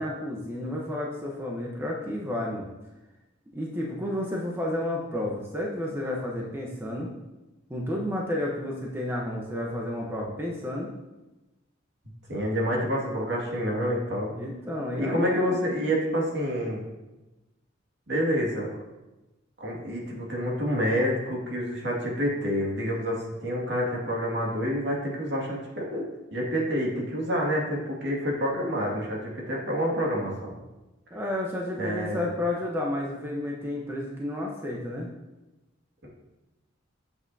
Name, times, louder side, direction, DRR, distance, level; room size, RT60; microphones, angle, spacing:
voice 1, 0.0-2.7 3.5-7.1 7.7-10.9 14.3-15.6 31.1-35.1, left 1 dB, 10° right, -2 dB, 0.9 m, -31 dB
voice 2, 12.3-14.3 15.0-16.8 18.1-18.8 19.6-26.0 26.3-30.6 31.8-32.2, equal, 60° right, -2 dB, 2.1 m, -28 dB
8.7 x 7.9 x 2.7 m, 1.0 s
head